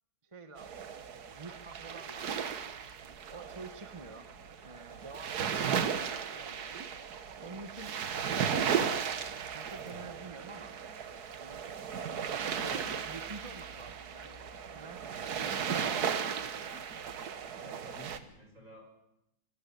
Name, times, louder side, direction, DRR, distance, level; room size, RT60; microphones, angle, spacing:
voice 1, 0.2-0.9 1.3-2.5 3.3-4.3 4.6-6.9 7.4-8.0 9.5-10.8 11.3-11.7 12.1-12.3 12.6-16.8, right 3 dB, 20° right, 8 dB, 1.1 m, -49 dB
sound 1, 0.6-18.2, right 7 dB, 70° right, 1.7 m, -36 dB
voice 2, 17.6-18.9, left 1 dB, 50° right, 1 dB, 6.7 m, -53 dB
24.5 x 13.0 x 10.0 m, 0.86 s
omnidirectional pair, 1.7 m